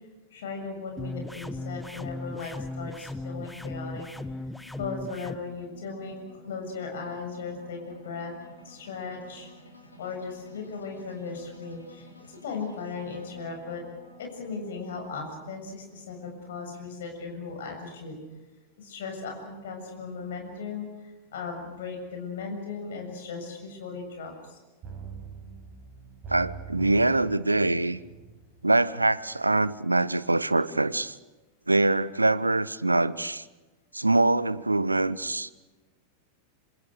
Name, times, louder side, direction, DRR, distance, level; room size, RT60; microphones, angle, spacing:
voice 1, 0.3-4.1 4.8-8.3 8.6-9.5 10.0-12.1 12.4-13.8 14.2-18.2 18.8-24.6, left 4 dB, 60° left, 3 dB, 7.2 m, -37 dB
sound 1, 1.0-5.4, left 2 dB, 5° left, 1.2 m, -37 dB
sound 2, 3.5-17.9, left 1 dB, 80° left, 4.2 m, -53 dB
sound 3, 24.8-29.5 29.8-29.9, right 6 dB, 30° right, 7.4 m, -43 dB
voice 2, 26.3-28.0 28.6-31.1 31.7-33.4 33.9-35.6, right 2 dB, 85° right, 18 dB, 0.8 m, -24 dB
26.5 x 26.5 x 6.5 m, 1.2 s
figure-of-eight pair, 90°, 0 cm